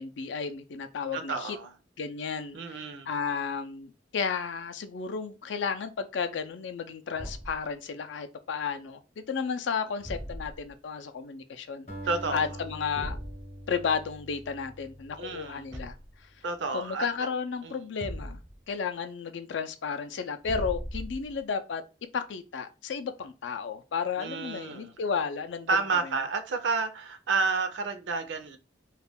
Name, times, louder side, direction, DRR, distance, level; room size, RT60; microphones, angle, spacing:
voice 1, 0.0-1.6 2.0-11.9 12.3-13.2 13.7-15.9 16.7-18.4 18.7-21.8 22.1-25.7, left 6 dB, 80° left, 0.4 m, -33 dB
voice 2, 1.1-1.7 2.5-3.1 12.1-12.4 15.2-15.6 16.4-17.3 17.6-17.8 24.2-24.9 25.7-28.6, right 4 dB, 75° right, 0.5 m, -30 dB
Thump thud, 7.1-7.7 10.0-10.7 13.0-13.4 15.7-16.2 18.0-18.6 20.4-21.4, equal, 10° right, 0.4 m, -38 dB
Acoustic guitar, 11.9-16.3, right 1 dB, 40° left, 0.7 m, -44 dB
2.4 x 2.1 x 3.3 m
head